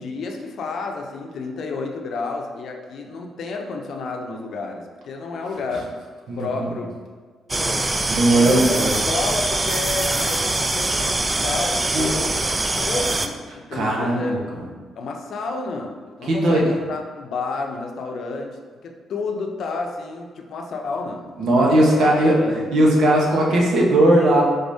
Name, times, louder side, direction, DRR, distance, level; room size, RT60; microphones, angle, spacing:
voice 1, 0.0-5.9 6.4-6.9 7.5-7.9 8.3-14.3 15.0-21.2 21.6-22.7, left 3 dB, 65° left, 2 dB, 0.6 m, -30 dB
voice 2, 6.3-6.7 8.1-8.9 11.9-12.1 13.7-14.4 16.3-16.6 21.4-22.4 22.7-24.4, right 1 dB, 70° right, -2 dB, 1.1 m, -17 dB
sound 1, 7.5-13.3, right 2 dB, 20° right, 0.3 m, -23 dB
4.8 x 4.0 x 2.7 m, 1.5 s
cardioid pair, 90°, 0 cm